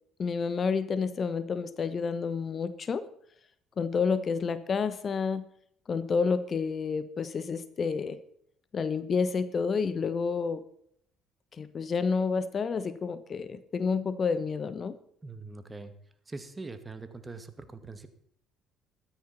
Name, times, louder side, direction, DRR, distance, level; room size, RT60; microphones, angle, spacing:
voice 1, 0.2-3.1 3.8-5.5 5.9-8.2 8.7-10.6 11.5-15.0, left 5 dB, 45° left, 14 dB, 1.2 m, -29 dB
voice 2, 15.2-15.9 16.3-18.1, right 3 dB, 20° right, 10 dB, 2.2 m, -42 dB
14.5 x 13.0 x 4.4 m, 0.69 s
supercardioid pair, 70°, 0 cm